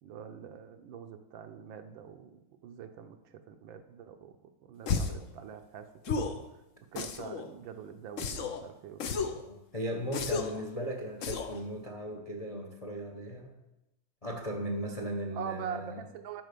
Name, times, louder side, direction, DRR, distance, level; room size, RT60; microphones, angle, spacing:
voice 1, 0.0-6.6 6.9-9.4 15.3-16.4, right 8 dB, 70° right, 8 dB, 1.4 m, -44 dB
sound 1, 4.9-5.2 6.0-6.4 7.0-7.5 8.2-8.6 9.0-9.4 10.1-10.6 11.2-11.6, left 5 dB, 70° left, 0.7 m, -33 dB
voice 2, 9.5-13.5 14.2-16.0, right 1 dB, 35° left, 2 dB, 0.5 m, -37 dB
12.0 x 4.2 x 6.7 m, 0.94 s
omnidirectional pair, 2.3 m